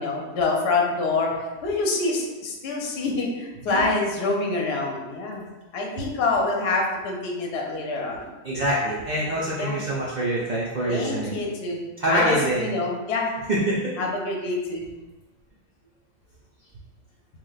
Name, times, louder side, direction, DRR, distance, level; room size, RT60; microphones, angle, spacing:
voice 1, 0.0-1.3 1.6-5.5 5.7-8.3 9.6-9.8 10.9-11.8 12.1-13.3 14.0-14.9, left 3 dB, 60° left, 0 dB, 0.8 m, -26 dB
voice 2, 8.4-11.4 12.0-12.6 13.5-14.0, right 1 dB, 70° right, -6 dB, 0.4 m, -25 dB
3.1 x 2.1 x 3.9 m, 1.2 s
omnidirectional pair, 1.4 m